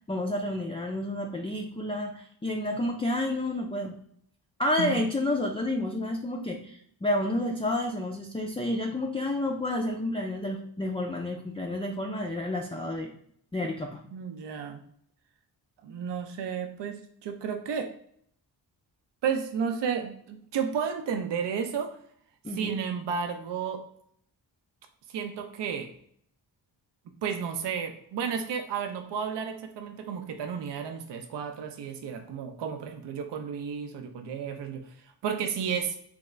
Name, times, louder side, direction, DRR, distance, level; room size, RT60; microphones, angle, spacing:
voice 1, 0.1-4.0 4.6-13.1 13.5-14.0 22.4-22.8, left 1 dB, 15° left, 1 dB, 0.3 m, -30 dB
voice 2, 14.1-14.8 15.8-17.9 19.2-21.9 22.5-23.8 25.1-25.9 27.2-34.8 35.2-35.9, right 7 dB, 75° right, 5 dB, 0.5 m, -32 dB
3.3 x 2.4 x 3.0 m, 0.66 s
wide cardioid pair, 80°, 43 cm